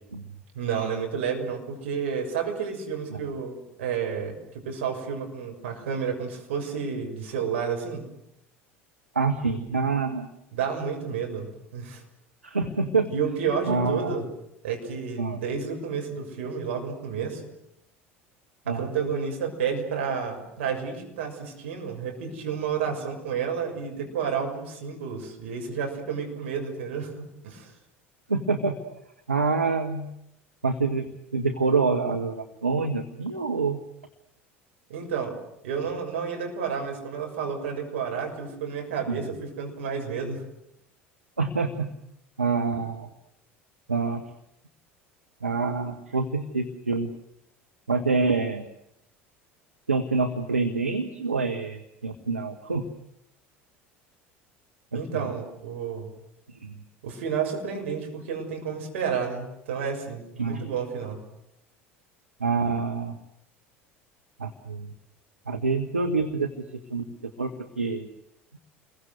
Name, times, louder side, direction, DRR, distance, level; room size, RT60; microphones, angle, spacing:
voice 1, 0.5-8.1 10.5-12.0 13.1-14.3 14.6-17.4 18.7-27.1 27.4-27.7 34.9-35.4 35.6-40.4 54.9-56.1 57.0-61.2, right 6 dB, 65° right, 3 dB, 6.5 m, -31 dB
voice 2, 9.1-10.3 12.4-13.1 13.7-14.2 15.2-15.4 18.7-18.8 28.3-28.8 29.3-30.1 30.6-33.8 39.1-39.3 41.4-41.9 42.4-43.1 43.9-44.2 45.4-47.1 47.9-48.7 49.9-52.9 54.9-55.3 56.5-56.8 60.4-60.7 62.4-63.2 64.4-64.9 65.5-67.5 67.8-68.1, right 4 dB, 85° right, 5 dB, 1.4 m, -26 dB
29.5 x 22.0 x 8.1 m, 0.79 s
figure-of-eight pair, 70°, 7 cm